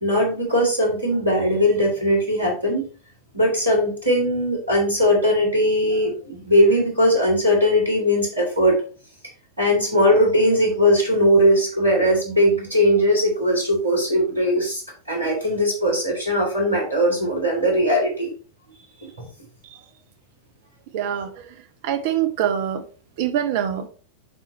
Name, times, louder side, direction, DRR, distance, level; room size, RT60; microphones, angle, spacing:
voice 1, 0.0-2.8 3.3-8.7 9.6-14.8 15.1-18.3 19.2-19.3, equal, 80° right, 3.3 m, -19 dB
voice 2, 20.9-21.3 21.8-22.8 23.2-23.9, right 10 dB, 50° right, 0.9 m, -23 dB
11.5 x 4.0 x 3.1 m
figure-of-eight pair, 90°, 0 cm